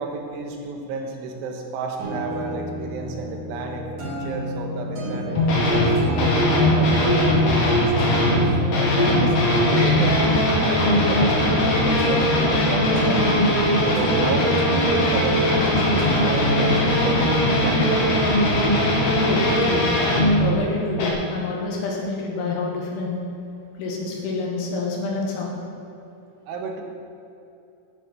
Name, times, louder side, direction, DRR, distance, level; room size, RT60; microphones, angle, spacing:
voice 1, 0.0-8.2 8.6-13.5 13.8-17.3 17.6-18.0 26.5-26.8, right 4 dB, 85° right, 2 dB, 3.6 m, -31 dB
sound 1, 2.0-18.0, equal, 50° right, 4.3 m, -30 dB
sound 2, 5.3-8.5 8.7-20.5 21.0-21.1, left 1 dB, 50° left, 2.1 m, -20 dB
voice 2, 19.2-19.8 20.4-23.2 23.8-25.6, left 3 dB, 75° left, -2 dB, 4.2 m, -27 dB
10.5 x 10.5 x 5.9 m, 2.8 s
omnidirectional pair, 5.5 m